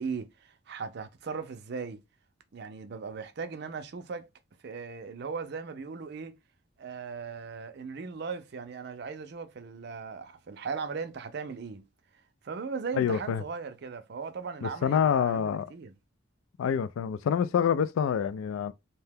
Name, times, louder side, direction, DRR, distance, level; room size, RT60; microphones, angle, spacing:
voice 1, 0.0-2.0 2.5-4.3 4.6-6.4 6.8-11.8 12.4-15.9, right 5 dB, 55° right, 0.4 m, -38 dB
voice 2, 12.9-13.4 14.6-15.7 16.6-18.7, left 7 dB, 80° left, 0.3 m, -27 dB
2.7 x 2.2 x 3.3 m
head